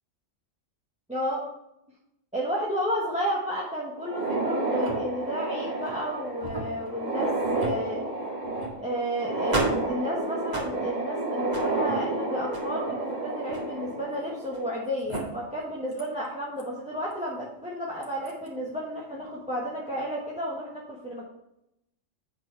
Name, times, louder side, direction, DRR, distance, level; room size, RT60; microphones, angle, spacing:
voice 1, 1.1-1.5 2.3-8.1 8.8-21.2, equal, 5° right, -5 dB, 1.3 m, -32 dB
sound 1, 4.0-14.7 15.1-15.2 16.0-16.1 16.6-16.7 18.0-18.3, right 2 dB, 35° right, 2.2 m, -30 dB
8.7 x 4.5 x 5.7 m, 0.84 s
omnidirectional pair, 1.3 m